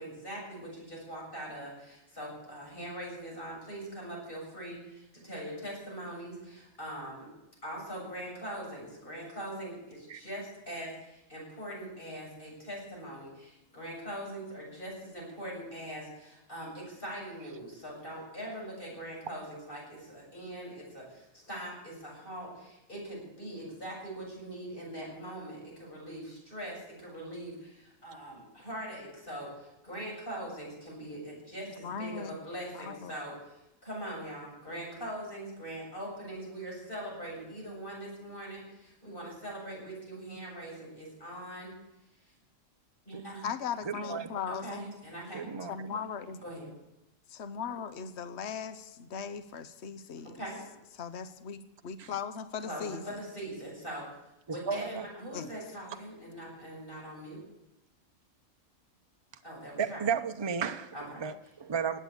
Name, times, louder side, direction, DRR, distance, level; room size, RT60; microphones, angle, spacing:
voice 1, 0.0-7.3 7.6-41.7 43.1-43.5 44.5-45.4 46.4-46.7 50.3-50.6 52.6-54.0 54.5-57.4 59.4-60.0 60.9-61.2, right 1 dB, 40° left, 7.7 m, -42 dB
voice 2, 31.8-32.3 32.7-33.1 43.4-44.9 45.7-46.4 47.3-50.4 51.0-53.0 55.3-55.5, left 6 dB, 60° left, 1.2 m, -38 dB
voice 3, 43.8-44.3 45.3-45.7 52.0-52.1 54.7-55.0 59.8-62.0, right 6 dB, 25° right, 0.7 m, -33 dB
18.5 x 8.9 x 8.5 m
omnidirectional pair, 1.3 m